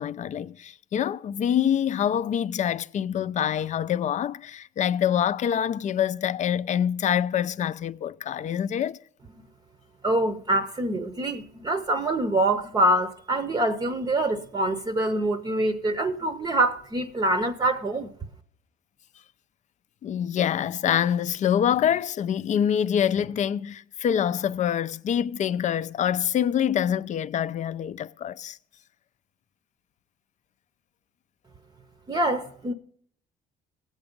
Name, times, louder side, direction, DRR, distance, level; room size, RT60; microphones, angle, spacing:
voice 1, 0.0-9.0 20.0-28.6, left 9 dB, 45° left, 0.5 m, -25 dB
voice 2, 10.0-18.1 32.1-32.7, right 1 dB, 25° right, 0.7 m, -25 dB
18.0 x 8.1 x 5.3 m
cardioid pair, 110°, 17 cm